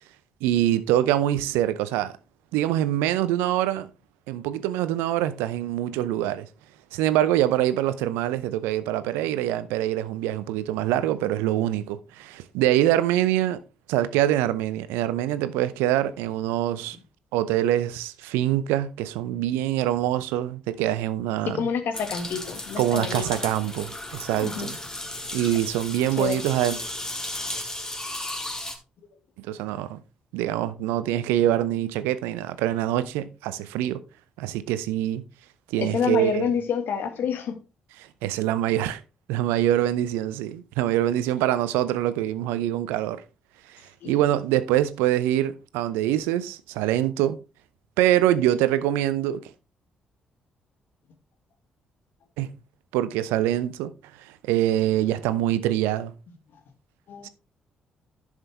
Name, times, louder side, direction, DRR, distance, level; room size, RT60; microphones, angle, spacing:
voice 1, 0.4-2.1 2.5-3.9 4.3-6.5 6.9-13.6 13.9-17.0 17.3-21.7 22.8-24.8 25.3-26.8 29.4-30.0 30.3-34.0 34.4-35.2 35.7-36.5 38.2-39.0 39.3-43.2 43.7-47.4 48.0-49.4 52.4-52.5 52.9-53.9 54.2-56.1 57.2-57.3, right 13 dB, 75° right, 0.6 m, -24 dB
voice 2, 21.5-23.4 24.3-24.7 26.2-26.4 35.8-37.6 44.0-44.2 57.1-57.3, left 7 dB, 60° left, 1.7 m, -28 dB
sound 1, 21.9-28.8, left 1 dB, 15° left, 2.4 m, -35 dB
11.0 x 6.4 x 3.4 m
hypercardioid pair, 45°, 4 cm